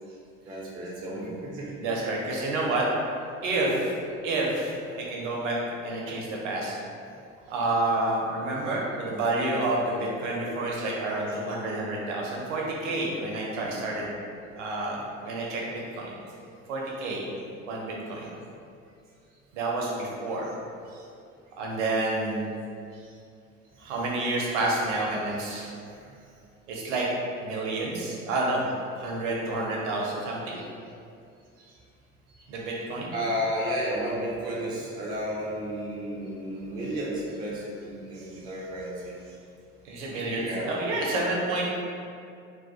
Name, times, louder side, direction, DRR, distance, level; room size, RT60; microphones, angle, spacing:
voice 1, 0.5-1.8 13.6-13.9 23.8-24.0 25.5-26.1 33.1-39.2 40.4-40.7 41.0-41.3, equal, 15° right, -5 dB, 0.3 m, -33 dB
voice 2, 1.8-2.9 3.4-3.9 4.2-5.6 5.8-6.8 7.5-14.1 14.6-16.1 16.7-17.3 17.7-18.3 19.5-20.5 21.6-22.5 23.8-25.7 26.7-27.1 27.4-28.6 29.0-30.6 32.5-33.1 39.8-41.6, right 2 dB, 60° right, -3 dB, 0.6 m, -29 dB
2.3 x 2.1 x 2.8 m, 2.4 s
figure-of-eight pair, 60°, 40 cm